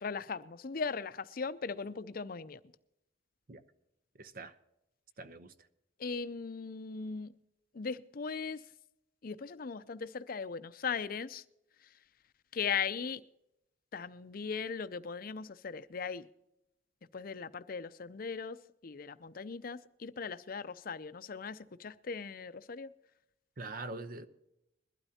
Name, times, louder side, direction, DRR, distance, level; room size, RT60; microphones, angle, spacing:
voice 1, 0.0-2.6 6.0-7.3 7.7-8.6 9.2-11.4 12.5-13.2 13.9-16.2 17.1-18.6 18.8-22.9, left 5 dB, 50° left, 0.6 m, -38 dB
voice 2, 4.2-4.5 5.2-5.5 23.6-24.3, right 2 dB, 50° right, 0.8 m, -43 dB
21.5 x 12.0 x 2.8 m
head